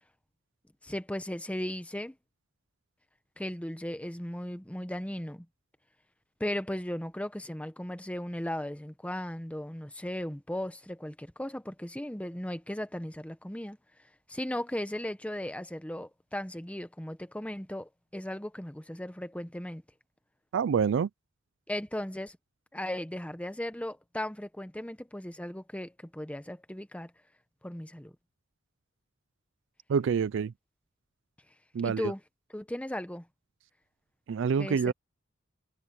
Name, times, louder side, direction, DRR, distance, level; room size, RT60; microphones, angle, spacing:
voice 1, 0.8-2.1 3.4-5.5 6.4-13.8 14.3-19.8 21.7-22.4 22.7-27.1 27.6-28.1 31.8-32.2 32.5-33.3 34.6-34.9, left 1 dB, 5° left, 0.9 m, -36 dB
voice 2, 20.5-21.1 29.9-30.5 31.7-32.1 34.3-34.9, right 6 dB, 65° right, 0.4 m, -27 dB
head